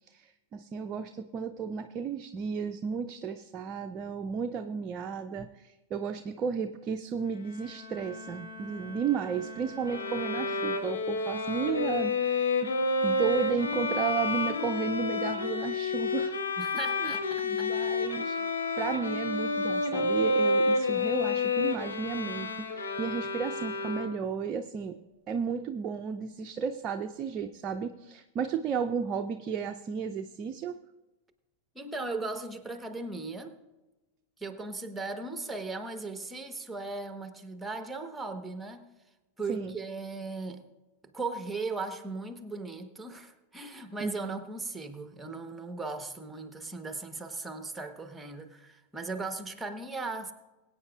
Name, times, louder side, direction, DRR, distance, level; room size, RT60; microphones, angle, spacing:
voice 1, 0.1-12.7 13.0-16.4 16.8-17.1 17.4-18.4 18.8-25.0 25.3-30.8 39.5-39.7 44.0-44.1, right 6 dB, 30° right, 6 dB, 0.5 m, -33 dB
Bowed string instrument, 7.2-11.2, left 3 dB, 50° left, 1.5 m, -46 dB
Bowed string instrument 2, 9.9-24.4, left 3 dB, 70° left, 1.2 m, -29 dB
voice 2, 16.6-17.7 31.7-33.5 34.4-38.9 39.4-40.6 41.1-50.3, right 3 dB, 5° right, 7 dB, 1.2 m, -37 dB
22.5 x 8.9 x 2.4 m, 1.1 s
figure-of-eight pair, 90°, 0 cm